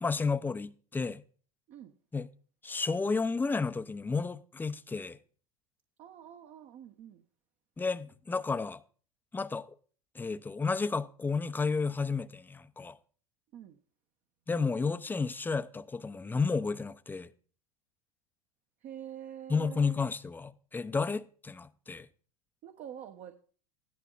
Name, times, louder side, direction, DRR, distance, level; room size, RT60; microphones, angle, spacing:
voice 1, 0.0-1.2 2.1-2.3 2.6-5.2 7.8-8.8 9.3-9.8 10.1-13.0 14.5-17.3 19.5-22.1, left 4 dB, 10° left, 0.7 m, -32 dB
voice 2, 6.0-7.2 13.5-13.8 18.8-20.0 22.6-23.3, right 10 dB, 45° right, 1.3 m, -46 dB
16.0 x 11.0 x 4.1 m
hypercardioid pair, 95°, 17 cm